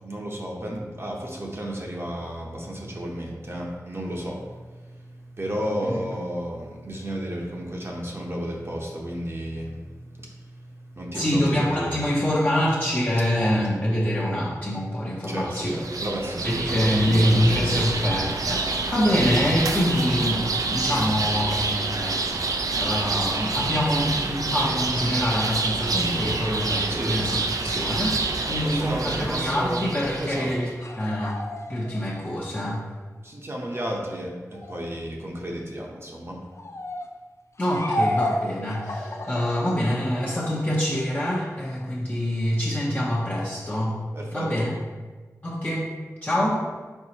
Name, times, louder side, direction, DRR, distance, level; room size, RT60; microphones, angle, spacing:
voice 1, 0.0-12.0 15.2-18.3 26.9-27.3 28.4-29.9 30.2-30.5 33.2-36.4 44.1-44.7, equal, 40° right, -1 dB, 0.8 m, -33 dB
voice 2, 11.1-15.8 16.4-22.2 22.8-30.7 31.0-31.4 31.7-32.9 37.6-44.1 44.3-44.7 45.4-45.9 46.2-46.6, equal, 30° left, -6 dB, 0.8 m, -25 dB
sound 1, 15.4-30.6, right 3 dB, 70° right, 0.4 m, -27 dB
sound 2, 29.9-32.3 34.5-34.8 36.5-37.1 37.6-39.6, left 1 dB, 50° left, 0.4 m, -30 dB
4.5 x 4.1 x 2.9 m, 1.3 s
wide cardioid pair, 55°, 6 cm